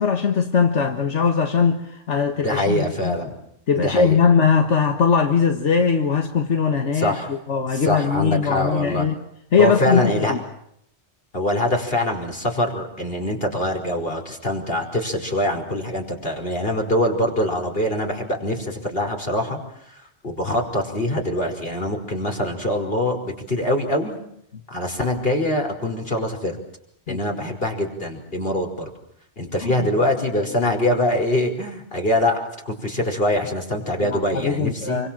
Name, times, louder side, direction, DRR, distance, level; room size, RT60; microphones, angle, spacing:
voice 1, 0.0-3.2 3.7-9.2 9.5-10.4 27.1-27.2 29.6-29.9 34.0-35.1, left 6 dB, 85° left, 1.8 m, -20 dB
voice 2, 2.4-3.3 3.8-4.2 7.0-7.3 7.7-9.1 9.6-10.4 11.3-19.6 20.2-24.2 24.7-26.6 27.1-28.9 29.4-35.0, left 1 dB, 55° left, 5.4 m, -24 dB
27.5 x 24.5 x 7.6 m
omnidirectional pair, 1.2 m